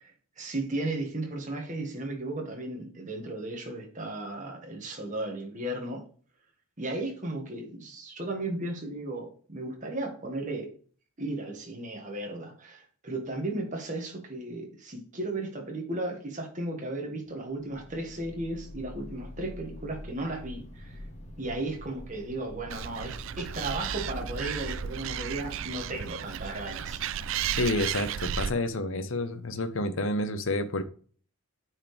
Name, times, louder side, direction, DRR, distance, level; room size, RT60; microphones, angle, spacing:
voice 1, 0.0-6.1 6.8-10.7 11.2-21.0 21.4-27.0, right 2 dB, 35° right, 1.6 m, -35 dB
sound 1, 17.5-26.7, left 1 dB, 30° left, 1.6 m, -46 dB
Animal, 22.7-28.5, right 9 dB, 60° right, 0.4 m, -34 dB
sound 2, 23.1-27.6, right 1 dB, 15° left, 1.6 m, -45 dB
voice 2, 27.6-30.8, left 2 dB, 60° left, 0.8 m, -29 dB
8.8 x 4.7 x 3.3 m
head